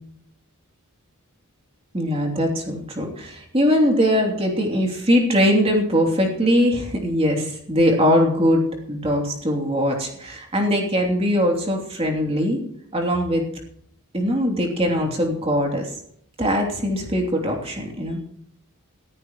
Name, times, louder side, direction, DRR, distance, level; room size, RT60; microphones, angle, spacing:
voice 1, 1.9-12.6 12.9-13.5 14.1-15.9 16.4-18.2, equal, 25° right, 1 dB, 3.0 m, -21 dB
18.5 x 14.5 x 3.1 m, 0.72 s
head